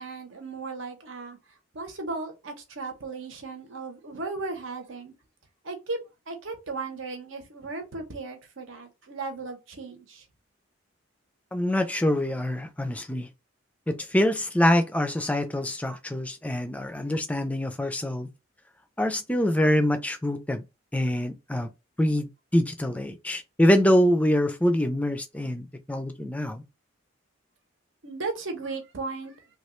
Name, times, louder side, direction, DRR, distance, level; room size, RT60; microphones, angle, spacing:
voice 1, 0.0-1.4 1.7-5.1 5.6-6.0 6.3-10.2 28.0-29.3, right 3 dB, 75° right, 0.9 m, -36 dB
voice 2, 11.5-13.3 13.9-18.3 19.0-20.6 20.9-21.7 22.0-26.6, equal, 5° left, 0.3 m, -25 dB
3.1 x 2.4 x 3.0 m
head